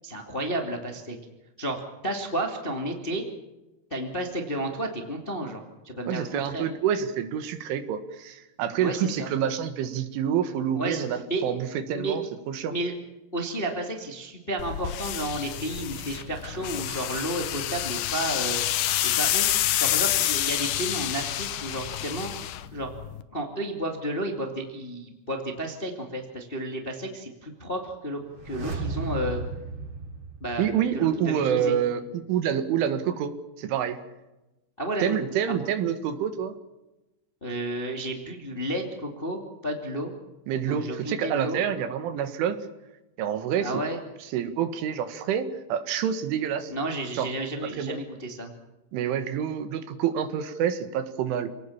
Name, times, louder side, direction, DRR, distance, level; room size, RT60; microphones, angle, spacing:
voice 1, 0.0-1.2 1.6-3.2 3.9-6.6 8.8-9.3 10.7-11.4 11.9-12.2 12.7-12.9 13.3-18.6 19.2-22.3 22.7-22.9 23.3-29.4 30.4-31.8 34.8-35.2 37.4-40.1 40.6-41.6 43.6-44.0 46.7-48.5, right 1 dB, 20° left, 3 dB, 1.4 m, -32 dB
voice 2, 6.1-12.8 30.6-34.0 35.0-36.6 40.5-42.6 43.2-43.7 44.3-46.7 47.1-47.3 47.8-48.0 48.9-51.5, right 9 dB, 80° right, 10 dB, 4.1 m, -27 dB
sound 1, 14.6-23.2, left 12 dB, 80° left, 2.0 m, -28 dB
sound 2, 28.2-31.2 31.4-31.5, right 3 dB, 30° right, 3.5 m, -35 dB
28.0 x 19.0 x 7.3 m, 1.0 s
omnidirectional pair, 5.6 m